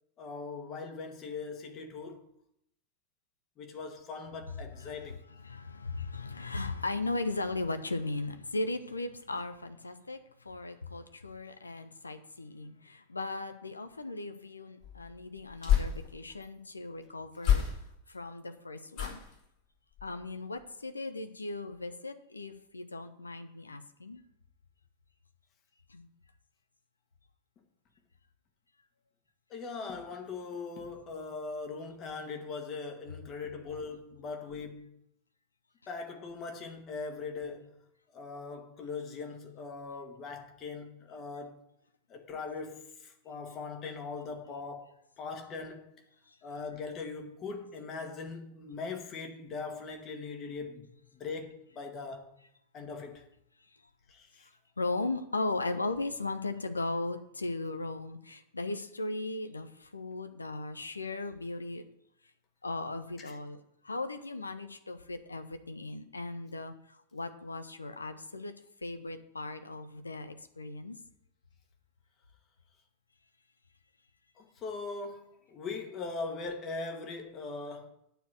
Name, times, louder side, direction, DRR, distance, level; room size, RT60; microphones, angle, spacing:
voice 1, 0.2-2.3 3.6-5.2 29.5-35.0 35.9-37.7 38.1-41.6 42.1-46.0 46.4-50.9 51.1-52.3 52.7-53.3 54.1-54.5 63.2-63.4 74.4-77.9, left 4 dB, 30° left, 1.8 m, -40 dB
voice 2, 4.8-5.1 5.4-10.2 10.4-17.6 18.1-19.2 20.0-24.2 25.9-26.1 54.8-61.8 62.6-63.6 63.8-66.7 67.1-68.5 68.8-71.0, left 2 dB, 80° left, 0.8 m, -37 dB
sound 1, 14.8-16.5 17.4-18.2 18.9-19.5 19.9-20.2 20.6-20.7, left 9 dB, 45° left, 3.5 m, -30 dB
9.2 x 4.6 x 7.6 m
figure-of-eight pair, 90°, 0 cm